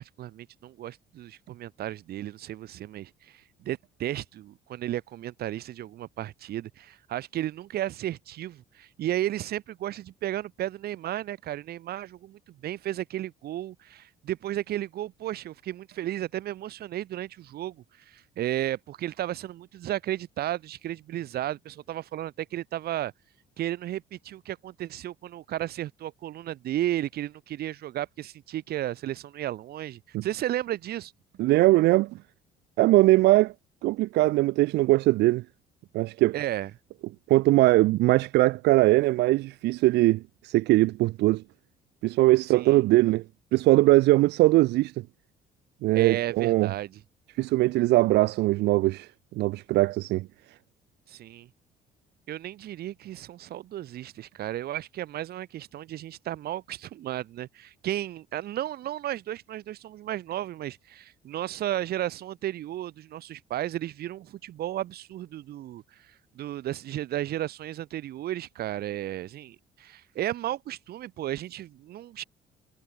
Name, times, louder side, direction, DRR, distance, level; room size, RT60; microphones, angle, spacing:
voice 1, 0.0-23.1 23.6-31.1 36.3-36.7 42.5-42.8 45.9-47.0 51.1-51.5 52.3-72.2, right 13 dB, 65° right, 4.6 m, -34 dB
voice 2, 31.4-32.2 32.8-33.5 33.8-35.4 35.9-36.3 37.3-41.4 42.0-43.2 43.5-44.9 45.8-46.7 47.4-49.1 49.4-50.3, right 18 dB, 85° right, 1.5 m, -21 dB
cardioid pair, 110°, 17 cm